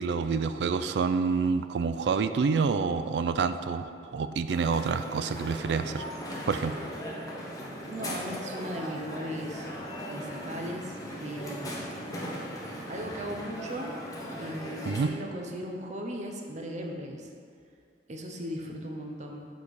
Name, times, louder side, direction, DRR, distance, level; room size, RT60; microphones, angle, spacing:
voice 1, 0.0-6.0 6.5-6.8 14.9-15.1, right 5 dB, 70° right, 10 dB, 0.3 m, -28 dB
Crowd, 4.5-15.1, equal, 20° left, 0.9 m, -38 dB
voice 2, 7.9-9.7 10.1-11.7 12.9-13.9 14.4-17.3 18.1-19.5, equal, 40° right, 2 dB, 0.7 m, -38 dB
6.9 x 4.2 x 4.8 m, 2.3 s
head